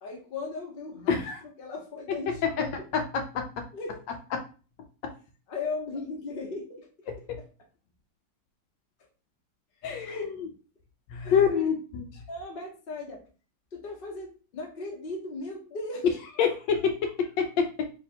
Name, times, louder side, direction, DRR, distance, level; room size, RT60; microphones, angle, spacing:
voice 1, 0.0-2.9 3.7-4.0 5.5-7.5 9.8-10.4 11.2-11.7 12.3-13.2 13.7-16.2, left 3 dB, 45° left, 1 dB, 0.8 m, -38 dB
voice 2, 1.1-1.4 3.3-3.4 9.8-10.5 11.1-12.0 16.4-17.7, left 7 dB, 75° left, 4 dB, 1.2 m, -26 dB
3.2 x 2.6 x 4.2 m, 0.36 s
omnidirectional pair, 2.1 m